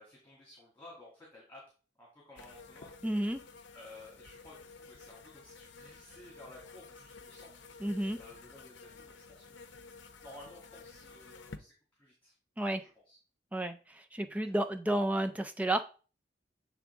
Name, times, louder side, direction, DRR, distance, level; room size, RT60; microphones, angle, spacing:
voice 1, 0.0-1.7 2.0-3.0 3.7-7.7 8.1-9.6 10.2-12.3 12.8-13.2 14.3-14.5, left 1 dB, 10° left, -5 dB, 2.3 m, -54 dB
sound 1, 2.4-11.6, left 4 dB, 75° left, 0.7 m, -52 dB
voice 2, 3.0-3.4 7.8-8.2 12.6-12.8 13.5-15.8, right 1 dB, 10° right, 7 dB, 0.4 m, -31 dB
8.3 x 3.5 x 3.6 m, 0.35 s
head